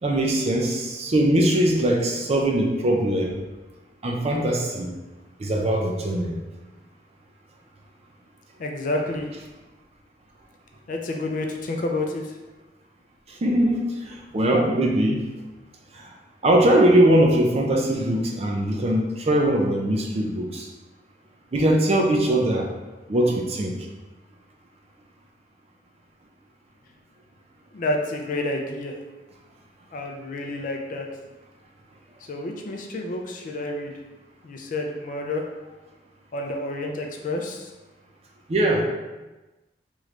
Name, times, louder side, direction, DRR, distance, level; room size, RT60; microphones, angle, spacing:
voice 1, 0.0-3.3 4.0-4.9 5.4-6.4 13.3-15.2 15.9-16.1 16.4-20.7 21.5-22.7 23.1-23.8 38.5-38.8, right 1 dB, 35° right, 1 dB, 0.4 m, -21 dB
voice 2, 8.6-9.3 10.9-12.3 27.7-29.0 29.9-31.1 32.3-33.9 34.4-35.5 36.3-37.7, left 2 dB, 50° left, 2 dB, 0.4 m, -29 dB
3.1 x 3.1 x 2.4 m, 1.1 s
head